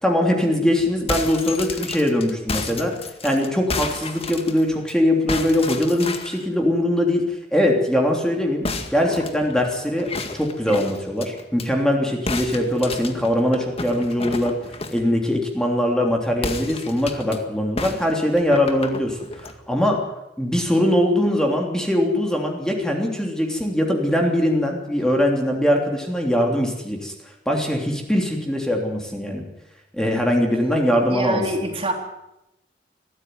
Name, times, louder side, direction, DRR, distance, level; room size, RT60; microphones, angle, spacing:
voice 1, 0.0-2.9 3.2-7.2 7.5-8.6 8.9-10.1 10.3-14.5 14.9-20.1 20.4-27.1 27.4-29.4 29.9-31.4, left 1 dB, 5° left, 1 dB, 3.3 m, -21 dB
sound 1, 0.9-4.9 5.3-6.5 8.6-11.7 12.3-15.1 16.4-17.4 17.8-19.6, left 3 dB, 35° left, 2.0 m, -31 dB
voice 2, 30.9-31.9, right 1 dB, 35° right, 3 dB, 3.5 m, -26 dB
21.5 x 15.5 x 9.5 m, 0.90 s
head